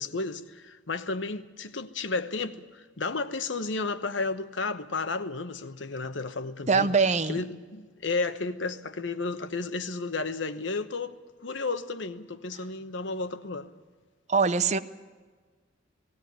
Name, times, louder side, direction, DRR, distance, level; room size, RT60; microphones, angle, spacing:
voice 1, 0.0-6.9 7.3-11.1 11.4-13.7, left 3 dB, 75° left, 1.1 m, -32 dB
voice 2, 6.7-7.4 14.3-14.8, right 5 dB, 35° right, 0.7 m, -23 dB
18.5 x 17.0 x 9.3 m
head